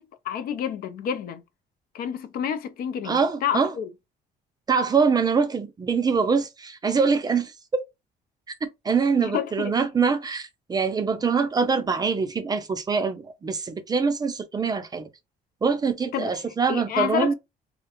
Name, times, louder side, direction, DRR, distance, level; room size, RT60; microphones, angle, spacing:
voice 1, 0.0-1.4 1.9-3.9 9.2-9.8 16.1-16.4 16.7-17.3, left 9 dB, 60° left, 0.4 m, -29 dB
voice 2, 3.0-3.7 4.7-7.5 8.8-15.1 15.6-17.3, right 5 dB, 25° right, 0.4 m, -24 dB
2.4 x 2.1 x 2.8 m
cardioid pair, 110°, 17 cm